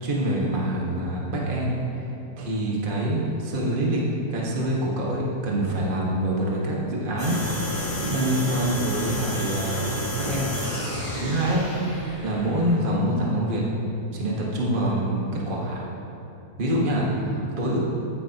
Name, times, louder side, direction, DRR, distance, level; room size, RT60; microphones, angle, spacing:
voice 1, 0.0-2.0 2.4-4.0 4.3-10.9 11.2-13.6 14.1-15.2 15.5-15.9 16.6-17.8, right 1 dB, 50° right, -4 dB, 0.6 m, -26 dB
sound 1, 7.2-13.0, left 1 dB, 15° left, 1.3 m, -31 dB
14.5 x 9.7 x 2.9 m, 2.7 s
omnidirectional pair, 3.5 m